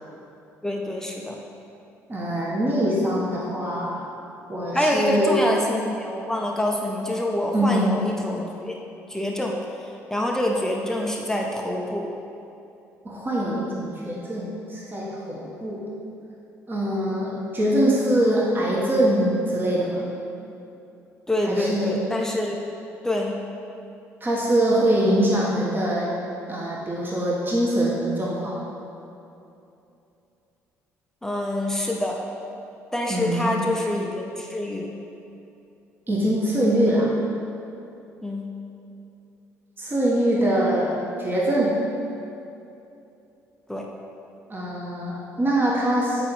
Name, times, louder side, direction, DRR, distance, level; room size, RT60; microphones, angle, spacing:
voice 1, 0.6-1.4 4.7-8.7 9.1-9.6 10.1-12.1 21.3-22.6 23.0-23.4 31.2-32.2 32.9-34.9 38.2-38.5 43.7-43.9, left 1 dB, 5° left, -1 dB, 0.7 m, -26 dB
voice 2, 2.1-4.1 4.5-5.4 7.5-8.0 13.0-15.9 16.7-20.1 21.4-22.0 24.2-26.1 26.5-28.6 33.1-33.7 36.1-37.2 39.8-40.9 41.2-41.8 44.5-46.3, right 1 dB, 25° right, -5 dB, 1.3 m, -23 dB
8.9 x 4.7 x 3.2 m, 2.8 s
figure-of-eight pair, 50°, 8 cm